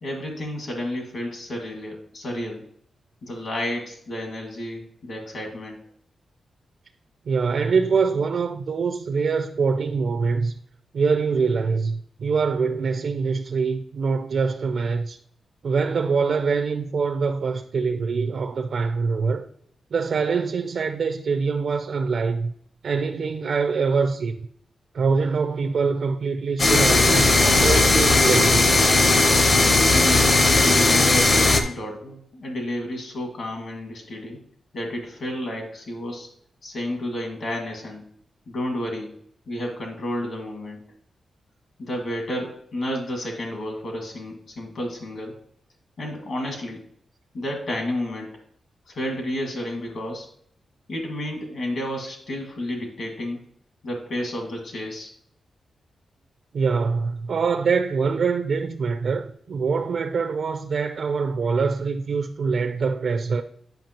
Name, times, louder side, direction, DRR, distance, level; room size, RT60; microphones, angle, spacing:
voice 1, 0.0-2.7 3.2-5.8 29.9-34.4 34.7-36.3 36.6-38.0 38.5-39.1 39.5-40.8 41.8-45.4 46.0-46.8 47.3-48.4 48.9-50.3 50.9-53.4 53.8-55.1, left 1 dB, 60° left, 1.7 m, -31 dB
voice 2, 7.3-10.5 10.9-15.2 15.6-19.5 19.9-22.5 22.8-24.4 24.9-28.6 56.5-63.4, right 5 dB, 55° right, 0.5 m, -24 dB
sound 1, 26.6-31.6, left 2 dB, 35° left, 0.7 m, -17 dB
9.1 x 5.7 x 2.9 m
wide cardioid pair, 170°, 0 cm